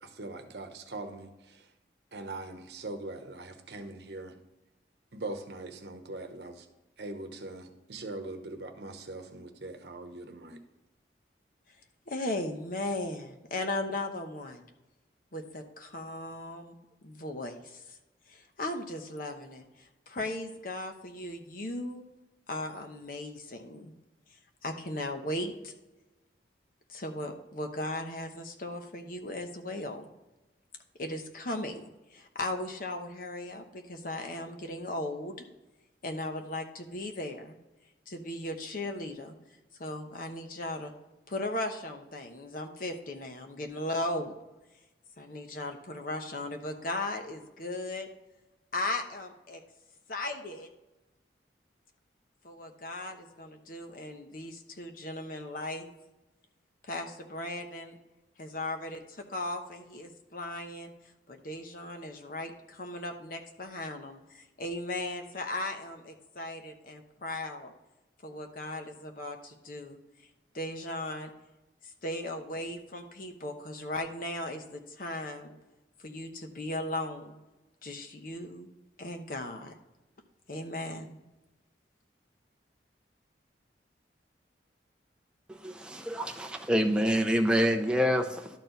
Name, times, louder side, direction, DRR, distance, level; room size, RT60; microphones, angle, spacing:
voice 1, 0.0-1.7 2.1-4.3 5.1-6.7 7.0-10.6, right 2 dB, 65° right, 1.0 m, -41 dB
voice 2, 12.1-14.6 15.3-16.7 17.0-17.8 18.3-22.0 22.5-23.9 24.6-25.7 26.9-30.1 31.0-31.8 32.1-35.3 36.0-37.6 38.1-39.3 39.8-40.9 41.3-44.4 45.2-48.1 48.7-49.6 50.1-50.7 52.4-55.9 56.9-58.0 58.4-60.9 61.3-67.7 68.2-70.0 70.5-71.3 71.8-75.5 76.0-77.4 77.8-78.7 79.0-79.7 80.5-81.2, left 1 dB, 50° left, 0.9 m, -37 dB
voice 3, 85.5-88.5, equal, 5° right, 0.6 m, -27 dB
12.0 x 4.5 x 3.9 m
head